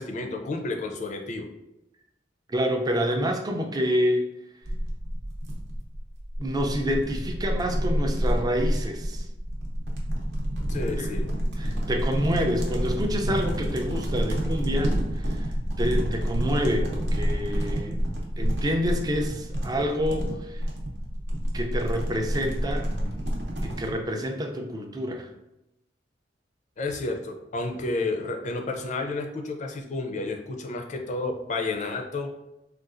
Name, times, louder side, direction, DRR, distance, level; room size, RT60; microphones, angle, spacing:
voice 1, 0.0-1.5 10.7-11.3 26.8-32.3, left 3 dB, 40° left, 4 dB, 0.4 m, -31 dB
voice 2, 2.5-4.3 6.4-9.3 11.0-11.1 11.6-15.5 15.8-18.0 18.4-20.6 21.5-22.9 23.6-25.3, equal, 20° right, 3 dB, 0.4 m, -28 dB
sound 1, 4.6-24.0, equal, 70° right, 0.7 m, -28 dB
3.8 x 2.3 x 2.5 m, 0.90 s
head